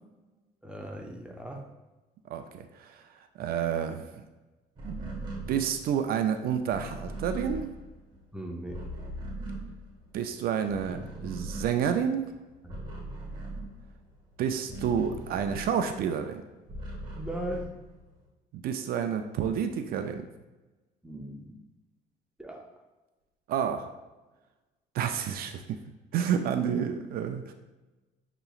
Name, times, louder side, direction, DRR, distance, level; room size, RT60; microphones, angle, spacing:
voice 1, 0.6-1.7 8.3-8.8 12.6-12.8 17.2-17.8 21.0-21.6 22.4-22.7, equal, 5° right, 1 dB, 0.6 m, -38 dB
voice 2, 2.3-4.2 4.8-7.7 10.1-12.3 14.4-16.4 18.5-20.3 23.5-23.9 24.9-25.8 26.1-27.5, right 8 dB, 60° right, 7 dB, 0.4 m, -30 dB
sound 1, 4.8-10.3 10.6-16.1 16.4-18.3, right 1 dB, 25° right, 1.3 m, -40 dB
6.6 x 2.9 x 2.4 m, 1.1 s
cardioid pair, 110°, 17 cm